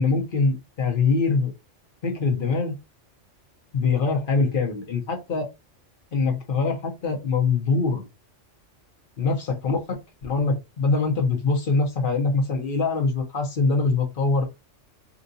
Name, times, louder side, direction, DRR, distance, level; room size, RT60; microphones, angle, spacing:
voice 1, 0.0-1.5 2.0-2.7 3.7-5.5 6.1-8.1 9.2-14.4, left 4 dB, 50° left, 1.0 m, -23 dB
3.9 x 2.4 x 2.6 m
omnidirectional pair, 1.3 m